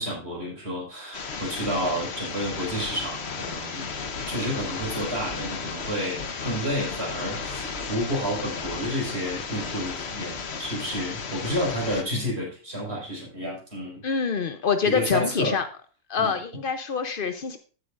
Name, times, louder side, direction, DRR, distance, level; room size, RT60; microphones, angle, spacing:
voice 1, 0.0-3.9 4.3-14.0 14.8-15.6 16.2-16.4, equal, 35° right, -3 dB, 5.3 m, -30 dB
sound 1, 1.1-12.0, left 5 dB, 45° left, 1.0 m, -34 dB
voice 2, 14.0-15.7 16.1-17.6, left 6 dB, 80° left, 8 dB, 0.4 m, -26 dB
16.0 x 7.8 x 2.5 m, 0.36 s
omnidirectional pair, 1.9 m